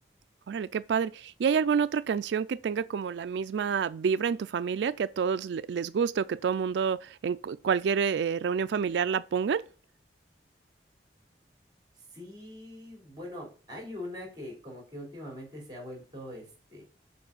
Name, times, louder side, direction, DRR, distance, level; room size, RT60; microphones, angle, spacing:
voice 1, 0.5-9.6, right 6 dB, 80° right, 0.3 m, -28 dB
voice 2, 11.9-16.8, left 1 dB, 25° right, 3.3 m, -42 dB
6.9 x 4.9 x 7.0 m
head